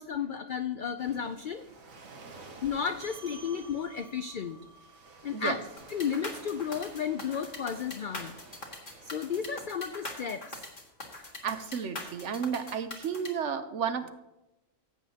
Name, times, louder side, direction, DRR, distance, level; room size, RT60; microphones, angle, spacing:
voice 1, 0.0-1.6 2.6-4.6 5.2-5.6 5.9-8.4 9.0-10.7, left 7 dB, 60° left, 9 dB, 0.5 m, -33 dB
Waves surf, 1.0-10.1, right 3 dB, 85° right, 1.9 m, -53 dB
sound 1, 3.0-7.8, right 3 dB, 50° right, 1.7 m, -54 dB
sound 2, 5.8-13.3, left 2 dB, 40° left, 1.9 m, -42 dB
voice 2, 11.4-14.1, right 7 dB, 65° right, 10 dB, 1.0 m, -32 dB
14.5 x 8.2 x 2.8 m, 0.97 s
omnidirectional pair, 1.4 m